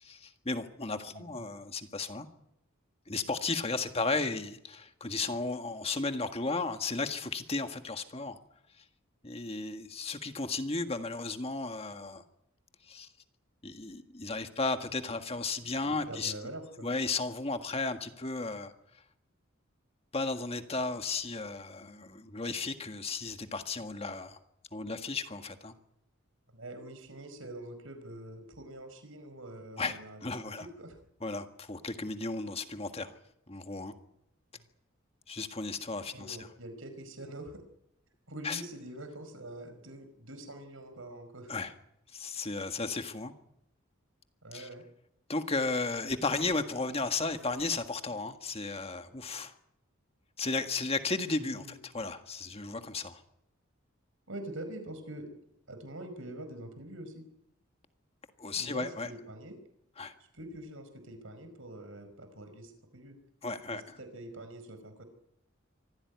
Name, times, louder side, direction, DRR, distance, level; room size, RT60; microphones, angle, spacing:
voice 1, 0.0-2.3 3.1-8.4 9.2-12.2 12.9-13.1 13.6-16.3 16.8-18.7 20.1-24.4 24.7-25.7 29.8-30.7 31.2-33.2 33.5-33.9 35.3-36.5 38.4-38.6 41.5-41.7 42.1-43.3 44.5-44.7 45.3-49.5 50.4-53.2 58.4-59.1 60.0-60.1 63.4-64.0, left 3 dB, 30° left, 7 dB, 1.7 m, -34 dB
voice 2, 1.1-1.5 15.8-16.9 26.5-31.0 36.1-37.6 38.3-41.5 44.4-44.8 51.4-51.8 54.3-55.3 55.7-57.2 58.6-59.6 60.3-63.2 63.7-65.0, right 1 dB, 75° right, 9 dB, 5.2 m, -45 dB
24.5 x 15.5 x 9.5 m, 0.80 s
head